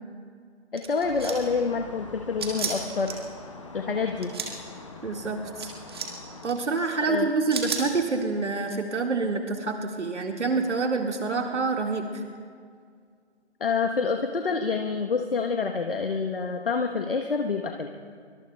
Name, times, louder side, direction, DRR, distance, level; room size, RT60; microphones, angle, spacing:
voice 1, 0.7-3.1 3.7-4.3 7.1-7.3 13.6-17.9, left 5 dB, 50° left, 4 dB, 1.1 m, -27 dB
sound 1, 0.8-1.5 2.4-3.1 4.1-4.5 5.6-6.1 6.4-6.5 7.5-7.8, right 5 dB, 20° right, 1.4 m, -32 dB
sound 2, 1.0-6.5, left 3 dB, 25° left, 0.9 m, -43 dB
voice 2, 5.0-5.7 6.4-12.2, right 4 dB, 80° right, 2 dB, 1.8 m, -27 dB
25.5 x 24.0 x 2.2 m, 2.1 s
figure-of-eight pair, 170°, 35 cm